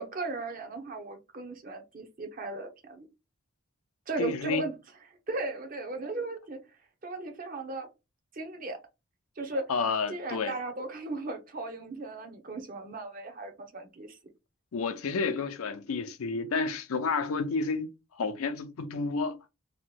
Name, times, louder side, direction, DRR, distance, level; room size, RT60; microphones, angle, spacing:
voice 1, 0.0-3.1 4.1-4.8 5.3-6.6 7.0-7.9 8.3-8.8 9.4-9.7 10.1-14.2, right 2 dB, 40° right, 0.6 m, -36 dB
voice 2, 4.2-4.6 9.7-10.5 14.7-19.4, left 4 dB, 85° left, 0.5 m, -30 dB
2.8 x 2.2 x 3.1 m
head